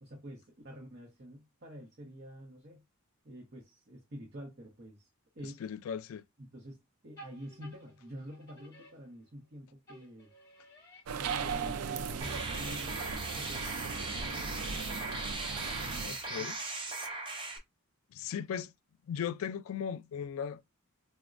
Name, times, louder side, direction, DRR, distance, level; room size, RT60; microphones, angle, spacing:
voice 1, 0.0-2.8 3.2-5.1 5.3-5.6 6.4-6.8 7.0-10.3 11.2-13.0 13.3-15.3 15.7-16.5, equal, 50° right, 0.9 m, -48 dB
voice 2, 5.4-6.2 16.0-16.6 18.1-18.7 19.0-20.6, left 8 dB, 70° left, 0.3 m, -37 dB
sound 1, 7.2-9.5 9.9-12.7, equal, 15° left, 1.2 m, -55 dB
sound 2, 11.1-16.1, right 6 dB, 85° right, 0.4 m, -38 dB
sound 3, 12.2-17.6, right 2 dB, 20° right, 0.5 m, -38 dB
4.1 x 2.1 x 2.4 m
head